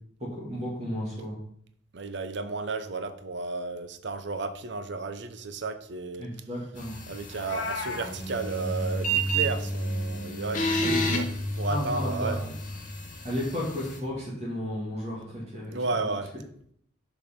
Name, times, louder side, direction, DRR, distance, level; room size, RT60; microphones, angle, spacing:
voice 1, 0.2-1.4 6.2-7.0 10.7-11.1 11.7-12.5 13.2-16.0, equal, 35° right, -5 dB, 2.0 m, -33 dB
voice 2, 1.9-6.3 7.1-12.4 15.7-16.3, right 3 dB, 65° right, 10 dB, 0.7 m, -33 dB
sound 1, 6.8-14.0, right 2 dB, 45° left, 1.2 m, -32 dB
Meow, 7.3-8.1, left 4 dB, 70° left, 1.1 m, -34 dB
sound 2, 7.7-13.7, equal, 10° left, 2.1 m, -33 dB
6.8 x 5.0 x 5.2 m, 0.66 s
head